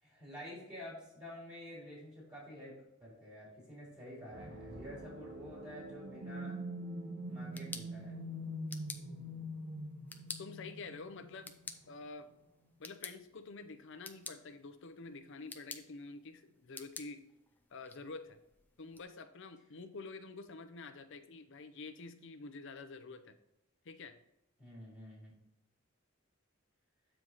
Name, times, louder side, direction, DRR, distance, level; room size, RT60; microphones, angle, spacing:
voice 1, 0.0-6.5 7.3-8.2 24.6-25.3, left 1 dB, 25° right, -6 dB, 2.7 m, -49 dB
sound 1, 4.3-12.0, equal, 60° right, 0.9 m, -44 dB
sound 2, 7.3-19.0, left 3 dB, 10° left, 0.4 m, -52 dB
voice 2, 10.4-11.5 11.9-12.3 12.8-17.2 17.7-18.4 18.8-23.4 23.8-24.1, left 3 dB, 65° left, 8 dB, 0.6 m, -48 dB
7.6 x 4.6 x 3.9 m, 0.86 s
head